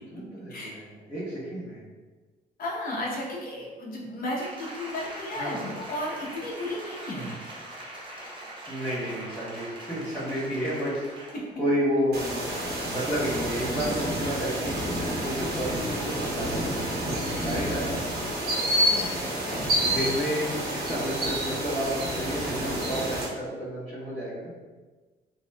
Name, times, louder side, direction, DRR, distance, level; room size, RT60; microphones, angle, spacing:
voice 1, 0.1-1.8 5.4-5.6 8.7-14.7 15.2-18.4 19.8-24.5, equal, 5° left, -15 dB, 1.4 m, -31 dB
voice 2, 2.6-7.4 11.3-11.4 18.9-20.6, left 1 dB, 55° left, -3 dB, 0.8 m, -34 dB
Applause, 4.4-11.5 11.9-12.0, right 1 dB, 25° right, 0.8 m, -42 dB
sound 1, 12.1-23.3, right 1 dB, 60° right, 0.8 m, -29 dB
3.0 x 2.7 x 2.2 m, 1.3 s
cardioid pair, 100°, 18 cm